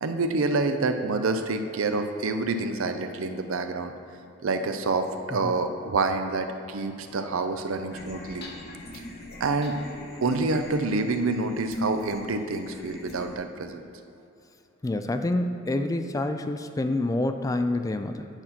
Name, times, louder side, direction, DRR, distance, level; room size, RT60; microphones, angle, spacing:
voice 1, 0.0-3.9 4.4-8.5 9.4-9.8 10.2-13.8, right 3 dB, 75° right, 7 dB, 0.6 m, -27 dB
sound 1, 7.9-13.4, left 1 dB, 50° left, 1.0 m, -40 dB
voice 2, 14.8-18.3, left 2 dB, 15° left, 8 dB, 0.3 m, -27 dB
8.9 x 4.2 x 5.9 m, 2.7 s
head